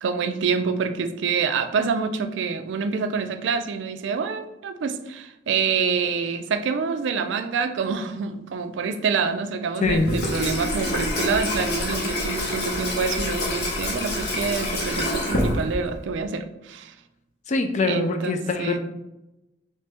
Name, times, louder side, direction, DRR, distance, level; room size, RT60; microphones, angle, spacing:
voice 1, 0.0-16.9 17.8-18.8, right 5 dB, 75° right, 8 dB, 0.3 m, -26 dB
Water tap faucet / Sink (filling or washing), 9.8-16.1, left 1 dB, 60° left, 0.8 m, -27 dB
voice 2, 17.5-18.8, left 3 dB, 40° left, 7 dB, 0.4 m, -23 dB
3.2 x 2.8 x 3.3 m, 0.93 s
head